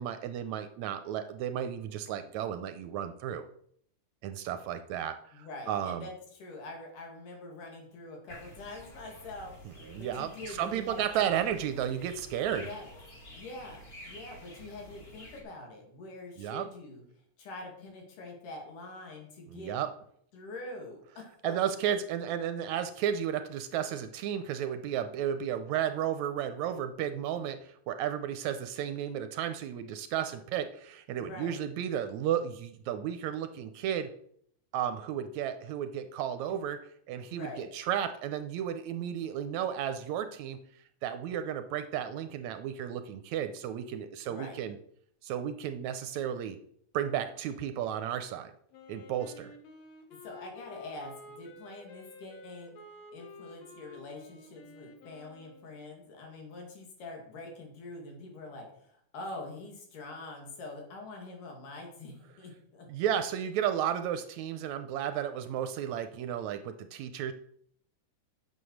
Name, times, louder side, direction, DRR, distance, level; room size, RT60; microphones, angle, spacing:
voice 1, 0.0-3.5 4.2-6.1 9.9-12.7 16.4-16.7 19.5-19.9 21.4-34.1 34.7-36.8 37.1-40.6 41.0-44.8 45.2-46.6 46.9-48.5 48.9-49.5 62.9-67.3, right 9 dB, 75° right, 10 dB, 1.8 m, -33 dB
voice 2, 5.3-11.3 12.6-12.9 13.3-17.0 17.4-19.7 20.3-21.5 31.2-31.6 36.5-36.6 37.3-37.7 44.2-44.6 50.1-52.7 53.1-62.9, left 2 dB, 80° left, 2 dB, 3.9 m, -45 dB
sound 1, 8.3-15.4, left 1 dB, 25° left, 1.6 m, -50 dB
Wind instrument woodwind instrument, 48.7-55.8, left 2 dB, 65° left, 2.3 m, -51 dB
8.9 x 6.8 x 6.4 m, 0.67 s
omnidirectional pair, 3.6 m